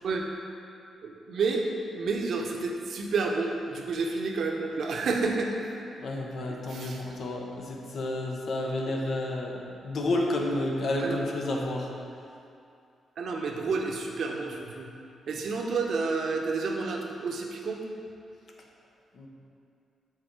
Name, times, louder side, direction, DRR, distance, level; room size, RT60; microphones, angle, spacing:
voice 1, 1.0-1.6 1.9-5.5 6.5-7.2 11.0-11.2 13.2-14.9 15.3-17.8, right 4 dB, 65° right, 1 dB, 0.9 m, -30 dB
voice 2, 6.0-11.9 19.1-19.3, left 1 dB, 60° left, 0 dB, 1.0 m, -30 dB
6.5 x 4.0 x 6.4 m, 2.5 s
cardioid pair, 105°, 0 cm